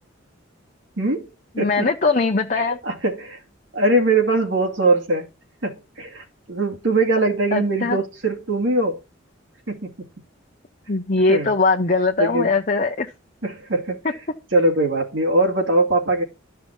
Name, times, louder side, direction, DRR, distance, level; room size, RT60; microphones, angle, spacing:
voice 1, 1.0-1.3 1.6-1.9 2.5-3.4 3.7-5.3 5.6-9.0 9.7-9.9 11.3-11.5 12.2-12.5 13.4-14.0 14.5-16.2, right 2 dB, 65° right, 2.3 m, -21 dB
voice 2, 1.6-2.8 7.5-8.0 10.9-13.1, left 3 dB, 40° left, 0.8 m, -20 dB
12.5 x 5.7 x 4.4 m
head